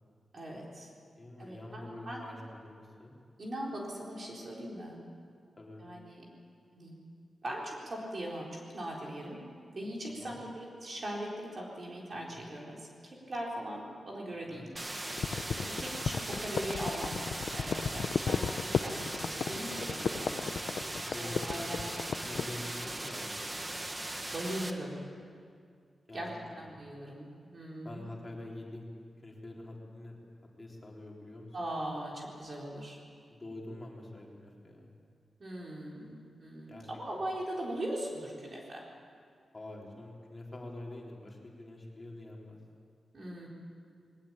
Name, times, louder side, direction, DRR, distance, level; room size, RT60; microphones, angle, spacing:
voice 1, 0.3-0.9 1.4-2.2 3.4-5.0 5.8-6.2 6.8-7.0 7.4-9.4 9.7-14.7 15.5-17.2 17.5-20.4 21.2-22.2 24.3-25.0 26.1-26.3 26.6-28.0 31.5-33.0 35.4-38.8 43.1-43.5, right 1 dB, 35° right, -2 dB, 4.0 m, -40 dB
voice 2, 1.2-3.1 5.6-5.8 10.1-10.4 12.1-12.4 14.5-14.7 17.8-18.3 21.0-21.8 22.2-24.0 26.1-26.8 27.8-28.9 29.2-30.2 30.6-31.5 33.3-34.9 36.7-37.2 39.5-42.6, left 1 dB, 20° left, -2 dB, 3.7 m, -46 dB
sound 1, 14.8-24.7, right 1 dB, 20° right, 1.3 m, -39 dB
sound 2, 15.1-22.5, left 6 dB, 65° left, 0.6 m, -34 dB
21.0 x 19.0 x 8.8 m, 2.2 s
wide cardioid pair, 170°, 0 cm